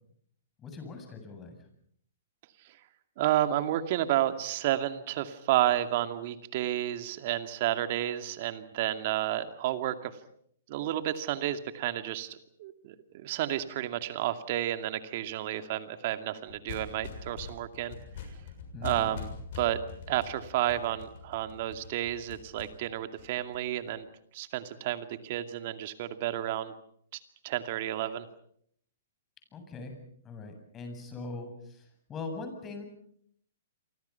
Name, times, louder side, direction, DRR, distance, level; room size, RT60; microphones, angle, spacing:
voice 1, 0.6-1.6 18.7-19.2 29.5-29.9 30.2-31.8 32.1-32.8, left 3 dB, 20° left, 6 dB, 7.8 m, -41 dB
voice 2, 3.2-10.1 10.7-18.0 18.8-19.3 19.6-19.8 20.1-24.1 24.3-26.7 27.1-28.3, right 13 dB, 50° right, 9 dB, 2.3 m, -31 dB
sound 1, 16.5-23.9, left 6 dB, 60° left, 6.9 m, -43 dB
28.5 x 25.0 x 5.8 m, 0.67 s
hypercardioid pair, 120°, 0 cm